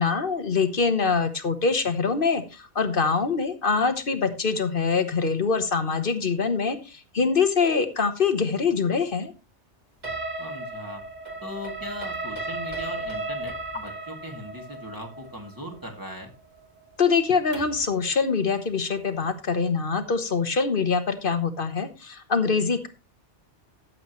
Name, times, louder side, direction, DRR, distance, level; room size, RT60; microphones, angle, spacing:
voice 1, 0.0-9.3 17.0-22.9, left 5 dB, 50° left, 9 dB, 1.3 m, -24 dB
sound 1, 10.0-17.9, right 2 dB, 40° right, 2.5 m, -35 dB
voice 2, 10.4-11.0 11.4-16.3, equal, 15° right, 0 dB, 2.4 m, -39 dB
14.0 x 7.8 x 3.1 m, 0.29 s
omnidirectional pair, 1.2 m